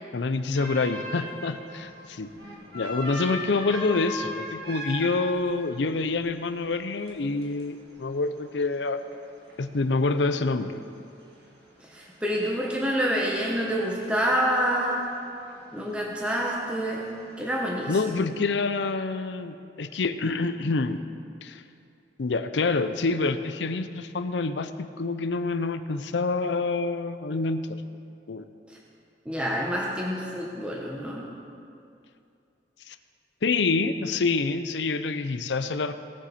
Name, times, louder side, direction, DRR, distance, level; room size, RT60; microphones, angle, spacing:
voice 1, 0.1-2.3 2.7-9.0 9.6-10.8 17.9-21.0 21.4-21.6 22.2-27.7 28.3-28.5 32.9-33.0 33.4-35.9, left 3 dB, 80° left, 10 dB, 0.6 m, -27 dB
sound 1, 0.5-17.6, equal, 65° right, 2.2 m, -42 dB
voice 2, 11.8-15.1 15.7-18.3 28.7-28.8 29.2-31.3, equal, 5° right, -3 dB, 1.0 m, -28 dB
18.5 x 7.3 x 4.3 m, 2.5 s
head